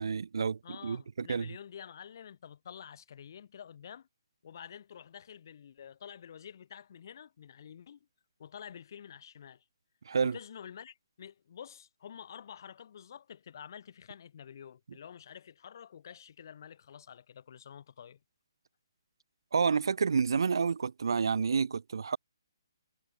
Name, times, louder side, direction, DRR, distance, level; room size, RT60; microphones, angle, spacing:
voice 1, 0.0-1.5 10.1-10.4 19.5-22.2, right 5 dB, 70° right, 0.7 m, -29 dB
voice 2, 0.6-4.1 4.4-8.1 8.4-9.6 10.2-18.2, left 8 dB, 55° left, 3.1 m, -49 dB
hypercardioid pair, 145°, 2 cm